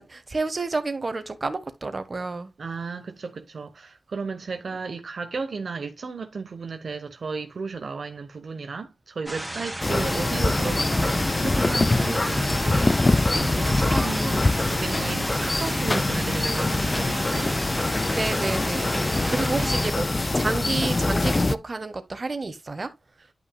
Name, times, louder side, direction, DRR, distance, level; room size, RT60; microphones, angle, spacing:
voice 1, 0.0-2.5 4.7-4.9 18.1-22.9, right 3 dB, 45° right, 1.3 m, -30 dB
voice 2, 2.6-17.6 19.2-19.7, right 4 dB, 70° right, 1.0 m, -34 dB
sound 1, 9.3-19.9, right 1 dB, 15° right, 2.0 m, -33 dB
sound 2, 9.8-21.6, left 2 dB, 35° left, 0.5 m, -24 dB
11.0 x 5.8 x 2.2 m
cardioid pair, 60°, 0 cm